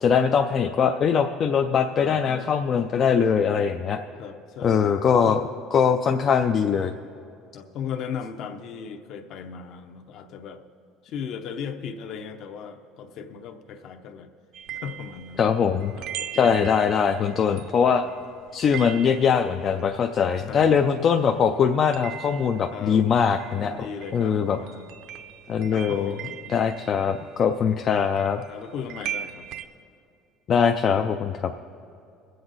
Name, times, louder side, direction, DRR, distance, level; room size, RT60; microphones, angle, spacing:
voice 1, 0.0-4.0 4.6-5.4 5.7-6.9 15.4-15.9 16.4-18.0 18.5-23.7 24.1-24.6 25.5-26.1 26.5-28.4 30.5-31.5, left 7 dB, 30° left, 5 dB, 0.3 m, -22 dB
voice 2, 2.0-2.5 4.2-5.0 5.3-5.5 7.5-10.6 11.0-14.3 14.7-15.4 16.0-16.5 17.1-17.4 20.4-20.9 22.7-23.0 23.6-24.9 25.7-26.6 28.5-29.5, left 7 dB, 45° left, 8 dB, 0.7 m, -37 dB
sound 1, 14.5-21.1 21.4-29.7, right 10 dB, 55° right, 0.6 m, -40 dB
22.0 x 7.8 x 4.0 m, 2.5 s
cardioid pair, 170°, 0 cm